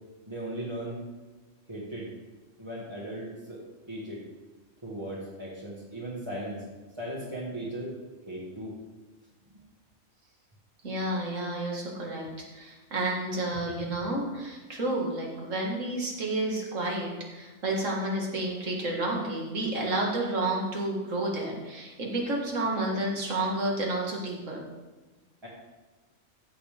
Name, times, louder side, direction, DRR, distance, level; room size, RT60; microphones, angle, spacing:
voice 1, 0.3-1.0 1.7-2.1 2.6-4.2 4.8-6.6 6.9-7.9 8.3-8.8 25.4-25.5, right 1 dB, 20° right, -7 dB, 1.7 m, -37 dB
voice 2, 10.8-24.6, right 2 dB, 75° right, -1 dB, 2.3 m, -30 dB
14.5 x 6.9 x 3.5 m, 1.2 s
omnidirectional pair, 1.3 m